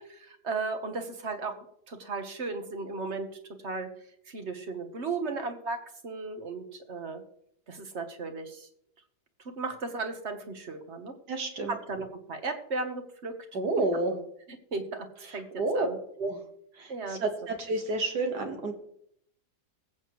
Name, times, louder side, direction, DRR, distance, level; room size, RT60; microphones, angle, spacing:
voice 1, 0.1-1.6 1.9-3.3 3.6-3.9 4.3-5.8 6.0-7.2 7.7-8.7 9.4-11.1 11.7-13.4 14.7-15.5 15.7-16.0 16.9-17.2, right 3 dB, 45° right, 7 dB, 1.5 m, -35 dB
voice 2, 11.3-11.8 13.5-14.2 15.6-15.9 16.2-16.4 16.8-18.7, right 2 dB, 75° right, 5 dB, 2.1 m, -29 dB
21.0 x 8.1 x 3.1 m, 0.72 s
omnidirectional pair, 1.7 m